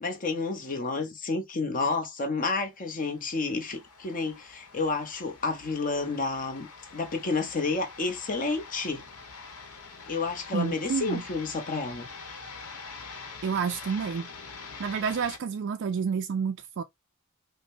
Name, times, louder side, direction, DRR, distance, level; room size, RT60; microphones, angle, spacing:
voice 1, 0.0-6.7 6.9-9.0 10.1-12.1, left 3 dB, 35° left, 0.8 m, -30 dB
sound 1, 2.8-15.4, left 4 dB, 75° left, 1.0 m, -45 dB
voice 2, 10.5-11.2 13.4-14.3 14.8-16.8, right 6 dB, 55° right, 0.3 m, -29 dB
5.1 x 2.1 x 2.6 m
head